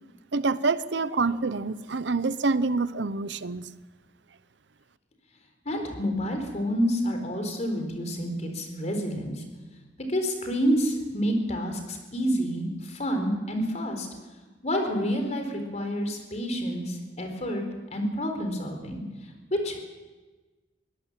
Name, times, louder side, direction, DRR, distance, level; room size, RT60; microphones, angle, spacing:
voice 1, 0.3-3.7, right 3 dB, 70° right, 15 dB, 0.8 m, -26 dB
voice 2, 5.7-9.4 10.1-14.1 14.6-17.6 17.9-19.0 19.5-19.8, equal, 40° left, 4 dB, 4.1 m, -28 dB
23.0 x 17.5 x 7.5 m, 1.3 s
head